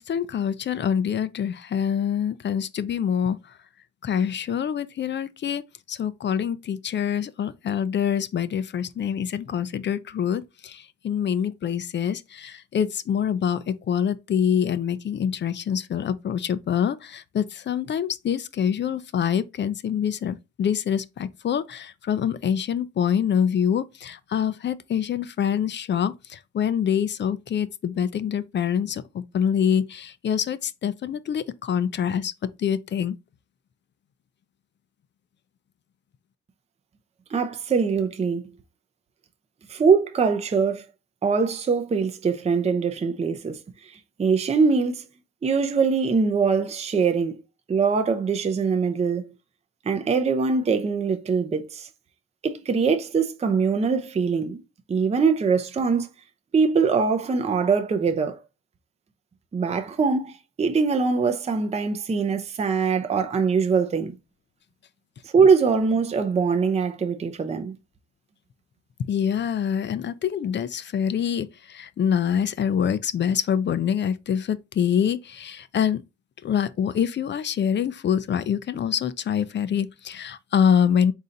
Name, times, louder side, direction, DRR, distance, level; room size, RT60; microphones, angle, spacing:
voice 1, 0.0-3.4 4.0-5.6 5.9-32.3 32.6-33.2 69.0-76.0 76.4-81.1, left 8 dB, 40° left, 0.4 m, -25 dB
voice 2, 37.3-38.5 39.7-40.8 41.2-43.9 44.2-45.1 45.4-47.4 47.7-49.3 49.9-51.9 52.4-54.6 54.9-56.1 56.5-58.4 59.5-64.1 65.3-67.7, right 5 dB, 20° right, 0.5 m, -22 dB
4.0 x 2.7 x 3.7 m
cardioid pair, 90°, 30 cm